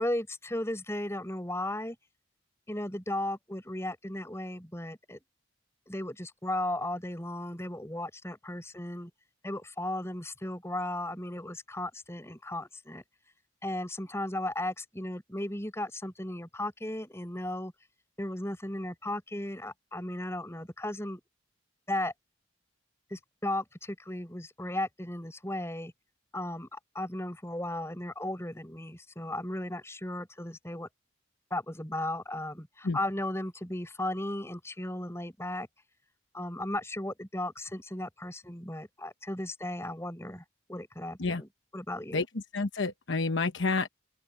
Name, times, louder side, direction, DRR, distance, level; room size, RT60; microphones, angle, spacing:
voice 1, 0.0-2.0 2.7-5.2 5.9-9.1 9.4-13.0 13.6-17.7 18.2-21.2 21.9-22.1 23.1-25.9 26.3-30.9 31.5-35.7 36.3-40.4 40.7-42.2, left 1 dB, 15° left, 6.2 m, -35 dB
voice 2, 42.5-43.9, left 3 dB, 65° left, 1.0 m, -29 dB
open air
head